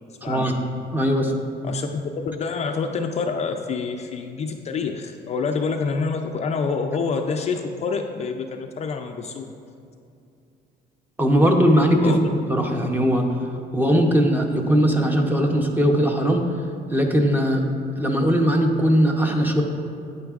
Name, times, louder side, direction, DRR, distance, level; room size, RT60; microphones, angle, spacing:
voice 1, 0.2-0.5 0.9-1.3 11.2-13.4 13.7-16.5 16.9-17.7 18.0-19.6, equal, 10° right, 2 dB, 0.7 m, -19 dB
voice 2, 1.6-9.5 12.0-12.2, left 5 dB, 35° left, 4 dB, 0.4 m, -27 dB
9.1 x 8.6 x 2.4 m, 2.5 s
cardioid pair, 130°, 18 cm